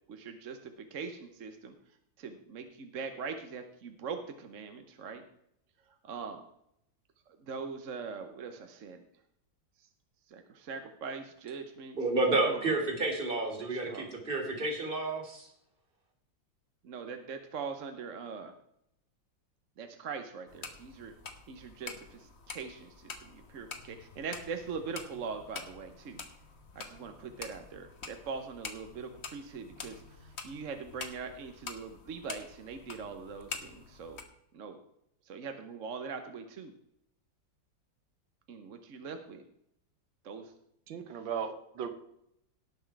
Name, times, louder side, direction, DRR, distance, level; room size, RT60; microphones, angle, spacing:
voice 1, 0.1-1.7 2.2-5.2 6.0-6.4 7.4-9.0 10.3-12.0 12.4-12.9 13.6-14.1 16.8-18.5 19.8-21.1 21.5-26.2 26.7-34.2 34.5-34.8 35.3-36.7 38.5-39.4 40.2-40.5, right 5 dB, 50° right, 6 dB, 1.0 m, -42 dB
voice 2, 12.0-15.5, right 2 dB, 30° right, 3 dB, 2.4 m, -30 dB
sound 1, 20.5-34.2, left 4 dB, 40° left, 1.2 m, -47 dB
voice 3, 40.9-41.9, right 7 dB, 85° right, 8 dB, 1.8 m, -36 dB
18.0 x 6.1 x 4.6 m, 0.77 s
omnidirectional pair, 2.0 m